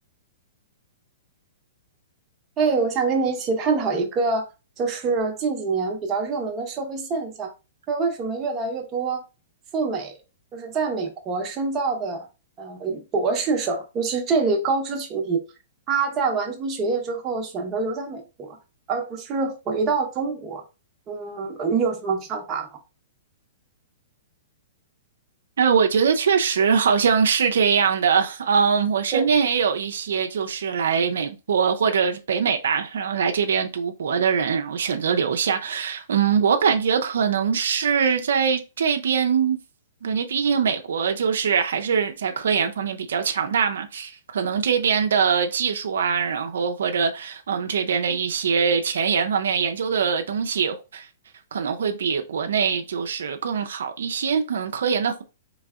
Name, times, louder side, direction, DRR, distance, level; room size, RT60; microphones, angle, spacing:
voice 1, 2.6-4.5 4.8-7.5 7.9-9.2 9.7-10.1 10.5-12.3 12.6-15.4 15.9-18.6 18.9-20.6 21.1-22.7 29.1-29.3, right 4 dB, 25° right, 0.9 m, -25 dB
voice 2, 25.6-39.6 40.0-51.1 51.5-55.2, right 6 dB, 80° right, 0.4 m, -22 dB
3.9 x 3.4 x 2.3 m
hypercardioid pair, 145°, 0 cm